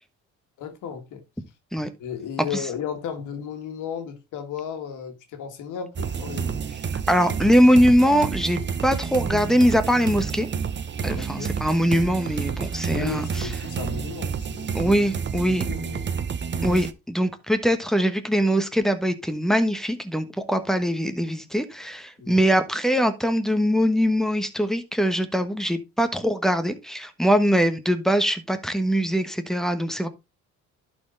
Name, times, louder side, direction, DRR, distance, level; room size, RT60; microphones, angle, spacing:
voice 1, 0.6-1.2 2.0-6.6 11.1-11.5 12.9-14.7 15.3-16.1 22.2-22.4, left 8 dB, 90° left, 2.0 m, -34 dB
sound 1, 6.0-16.9, right 6 dB, 35° right, 0.8 m, -29 dB
voice 2, 7.1-10.5 11.0-13.5 14.7-15.6 16.6-30.1, equal, ahead, 1.2 m, -22 dB
11.5 x 4.5 x 3.9 m
cardioid pair, 90°, 30 cm